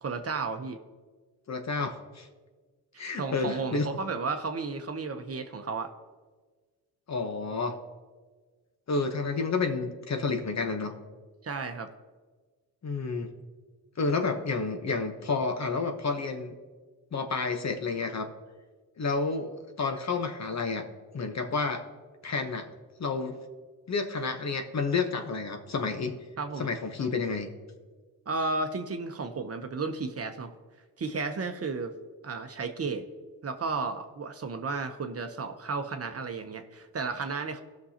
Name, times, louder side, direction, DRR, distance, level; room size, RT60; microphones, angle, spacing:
voice 1, 0.0-0.8 3.2-5.9 11.4-11.9 26.4-26.7 28.3-30.5 31.0-31.9 32.2-33.1 33.4-37.6, right 4 dB, 35° right, 6 dB, 0.9 m, -33 dB
voice 2, 1.5-2.3 3.0-3.9 7.1-7.8 8.9-10.9 12.8-13.3 14.0-16.5 17.1-18.3 19.0-20.9 21.1-21.9 22.2-22.7 23.0-23.3 23.9-26.1 26.6-27.5, left 4 dB, 40° left, 6 dB, 1.2 m, -30 dB
18.0 x 6.3 x 2.9 m, 1.4 s
supercardioid pair, 70°, 41 cm